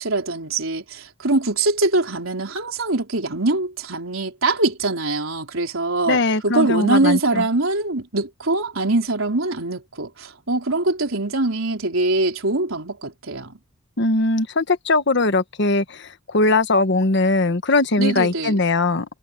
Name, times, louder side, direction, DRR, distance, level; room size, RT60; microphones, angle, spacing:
voice 1, 0.0-13.6 18.0-18.6, right 2 dB, 80° right, 3.9 m, -23 dB
voice 2, 6.1-7.4 14.0-19.2, left 2 dB, 60° left, 1.3 m, -20 dB
head